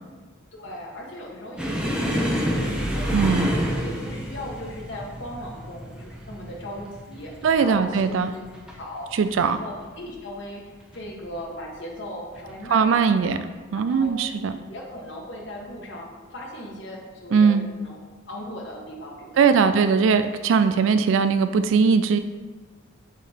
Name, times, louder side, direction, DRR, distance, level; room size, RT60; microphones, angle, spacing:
voice 1, 0.5-8.4 8.7-9.1 9.4-10.6 10.9-13.3 13.7-14.2 14.5-18.0 18.3-19.8, left 1 dB, 65° left, -1 dB, 1.4 m, -38 dB
sound 1, 1.6-8.8 9.1-9.5 9.8-10.0 10.8-11.4 12.4-12.5 13.9-14.1, equal, 5° right, 0.8 m, -28 dB
voice 2, 3.1-3.5 7.4-8.3 9.1-9.6 12.7-13.4 13.7-14.5 17.3-17.7 19.4-22.2, right 5 dB, 75° right, 10 dB, 0.3 m, -20 dB
7.0 x 3.9 x 6.1 m, 1.4 s
head